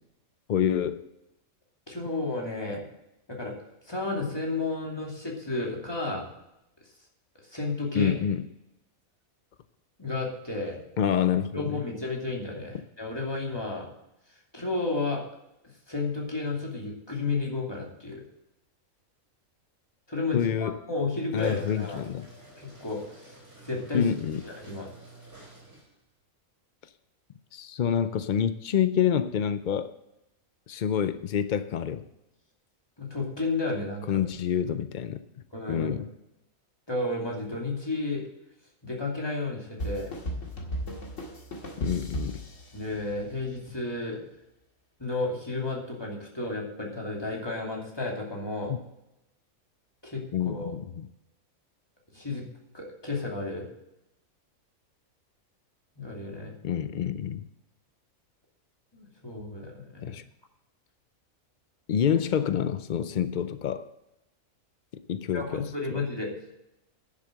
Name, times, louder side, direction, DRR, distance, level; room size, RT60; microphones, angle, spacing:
voice 1, 0.5-1.0 7.9-8.5 11.0-11.8 20.3-20.8 21.3-22.3 23.9-24.4 27.5-29.9 30.7-32.0 34.1-35.2 35.7-36.0 41.8-42.4 48.7-48.8 50.3-51.1 56.6-57.5 60.0-60.2 61.9-63.9 64.9-66.0, left 8 dB, 85° left, 12 dB, 0.4 m, -27 dB
voice 2, 1.9-2.9 3.3-3.5 3.8-6.3 7.5-8.2 10.0-10.8 11.5-13.9 14.5-15.2 15.9-18.2 20.1-22.0 22.6-23.4 23.6-24.0 24.4-24.9 33.0-34.2 35.5-36.0 36.9-38.2 38.8-40.1 42.7-44.2 45.0-48.7 50.0-50.2 50.5-50.8 52.1-52.5 52.7-53.7 56.0-56.5 58.9-60.1 65.3-66.3, left 3 dB, 15° left, -2 dB, 2.6 m, -32 dB
sound 1, 21.3-26.1, right 2 dB, 40° right, 3.8 m, -51 dB
sound 2, 39.8-43.4, equal, 60° left, 2.2 m, -35 dB
10.0 x 7.6 x 6.3 m, 0.88 s
omnidirectional pair, 1.5 m